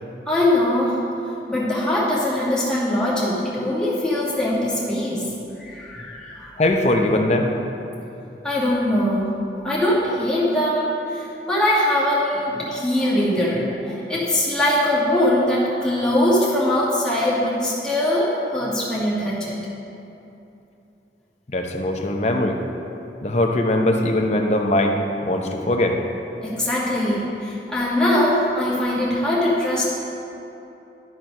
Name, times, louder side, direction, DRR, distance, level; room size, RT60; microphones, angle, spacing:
voice 1, 0.3-1.0 1.5-5.3 5.6-6.6 8.4-9.3 9.6-19.6 26.4-29.8, left 1 dB, 5° left, -8 dB, 1.8 m, -22 dB
voice 2, 6.6-7.5 21.5-22.6 23.2-26.0, left 1 dB, 40° left, 3 dB, 0.7 m, -21 dB
12.5 x 4.6 x 5.3 m, 2.9 s
head